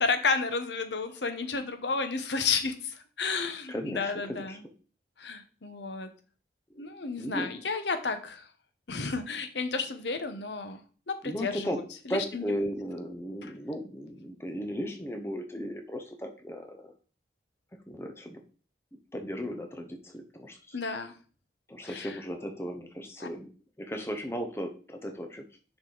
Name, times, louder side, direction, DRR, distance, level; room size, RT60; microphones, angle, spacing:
voice 1, 0.0-4.6 5.2-6.1 6.8-8.5 8.9-10.8 11.1-11.7 12.1-12.5 20.7-21.1 21.9-22.1 23.2-23.3, left 4 dB, 85° left, 8 dB, 1.0 m, -31 dB
voice 2, 3.7-4.6 6.7-6.9 7.2-7.6 11.2-11.8 12.1-16.9 17.9-18.4 19.1-20.8 21.7-23.5 23.8-25.4, equal, 15° left, 5 dB, 0.9 m, -36 dB
6.4 x 5.1 x 3.9 m, 0.38 s
head